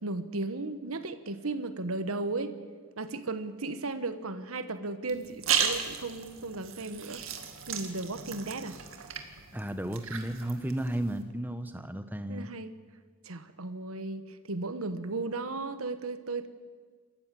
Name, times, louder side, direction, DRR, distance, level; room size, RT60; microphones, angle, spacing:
voice 1, 0.0-2.5 3.0-7.2 7.7-8.8 12.3-12.7 13.2-16.5, right 3 dB, 90° right, 11 dB, 1.3 m, -35 dB
sound 1, 5.1-11.2, right 7 dB, 75° right, 2.1 m, -35 dB
voice 2, 9.5-12.5, right 1 dB, 10° right, 9 dB, 1.1 m, -33 dB
27.5 x 15.0 x 7.7 m, 1.5 s
head